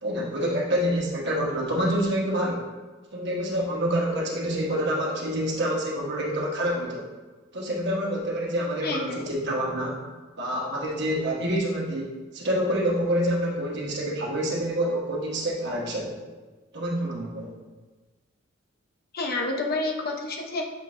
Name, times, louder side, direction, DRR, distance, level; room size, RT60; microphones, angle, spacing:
voice 1, 0.0-2.7 3.1-7.1 7.5-10.0 10.4-16.2 16.7-17.5, equal, 60° right, -2 dB, 1.3 m, -27 dB
voice 2, 8.8-9.2 19.1-20.6, left 2 dB, 50° left, 1 dB, 0.9 m, -29 dB
7.2 x 5.2 x 2.6 m, 1.3 s
head